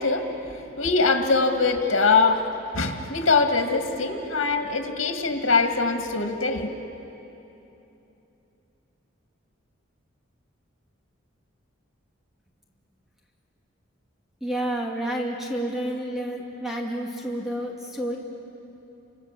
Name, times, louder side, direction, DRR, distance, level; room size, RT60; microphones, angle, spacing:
voice 1, 0.0-6.7, left 4 dB, 80° left, 5 dB, 2.0 m, -23 dB
voice 2, 14.4-18.2, right 1 dB, ahead, -2 dB, 2.4 m, -29 dB
30.0 x 26.5 x 7.5 m, 3.0 s
head